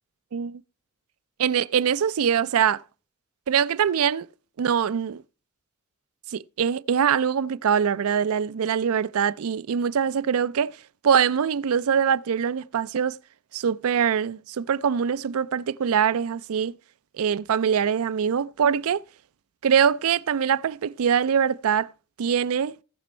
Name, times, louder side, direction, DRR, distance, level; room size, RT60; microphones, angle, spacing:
voice 1, 0.3-0.6 1.4-2.8 3.5-4.3 4.6-5.2 6.3-10.7 11.0-13.2 13.5-16.7 17.2-19.0 19.6-21.9 22.2-22.7, right 7 dB, 75° right, 0.4 m, -23 dB
17.5 x 6.1 x 4.3 m
head